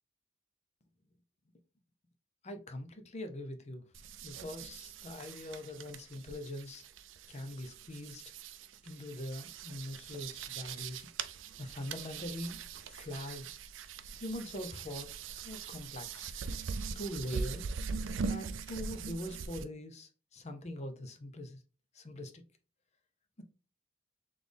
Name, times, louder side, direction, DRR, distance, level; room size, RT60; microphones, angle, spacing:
voice 1, 2.4-3.8 4.2-6.8 7.3-8.2 8.8-11.1 11.6-12.6 12.9-13.5 14.2-15.1 15.4-16.3 17.0-17.7 18.3-21.6 21.9-22.3, left 1 dB, 35° left, 0.7 m, -42 dB
sound 1, 3.9-19.7, right 5 dB, 70° right, 0.4 m, -42 dB
4.1 x 3.3 x 3.4 m
head